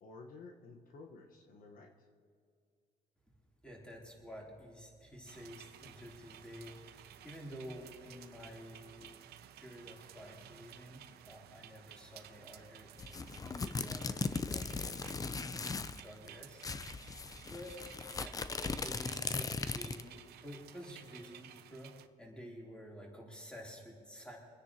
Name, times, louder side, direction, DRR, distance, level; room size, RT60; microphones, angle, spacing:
voice 1, 0.0-2.1, left 3 dB, 55° left, 2 dB, 1.3 m, -53 dB
voice 2, 3.6-9.1 9.6-12.9 13.4-15.0 15.3-17.1 17.5-17.8 18.1-18.4 18.8-21.9 22.2-24.4, equal, 5° left, -3 dB, 3.3 m, -51 dB
sound 1, 5.3-22.1, right 11 dB, 70° right, 0.7 m, -55 dB
sound 2, 13.0-16.0 16.3-16.4 16.6-20.1, left 4 dB, 20° left, 0.5 m, -38 dB
26.5 x 9.9 x 2.9 m, 2.2 s
cardioid pair, 110°, 17 cm